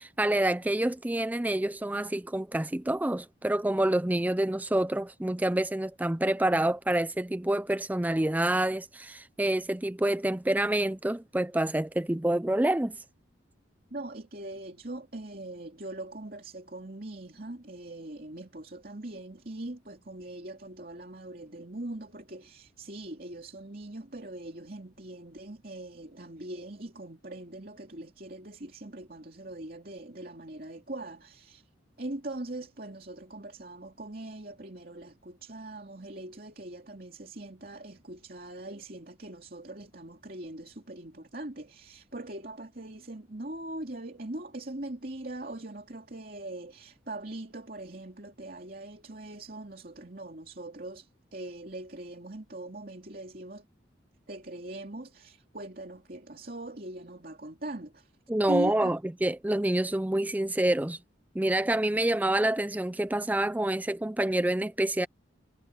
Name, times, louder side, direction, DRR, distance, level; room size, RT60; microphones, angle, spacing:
voice 1, 0.0-13.0 58.3-61.0 61.3-65.1, right 1 dB, 10° right, 0.4 m, -27 dB
voice 2, 13.9-31.7 32.0-53.7 54.3-58.1 58.5-59.0, right 1 dB, 50° right, 2.8 m, -41 dB
head